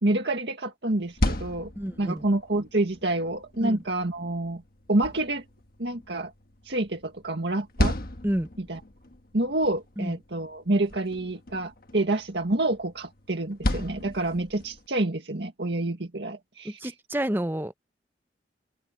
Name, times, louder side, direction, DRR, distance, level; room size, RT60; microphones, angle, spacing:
voice 1, 0.0-1.7 2.0-4.6 4.9-5.4 5.8-6.3 6.7-8.0 8.6-8.8 9.3-16.9, right 2 dB, 65° right, 2.0 m, -28 dB
sound 1, 0.9-14.9, left 1 dB, 55° left, 1.4 m, -35 dB
voice 2, 1.8-2.2 3.6-3.8 8.2-8.5 10.0-10.2 16.6-17.7, right 1 dB, 10° right, 0.8 m, -29 dB
open air
head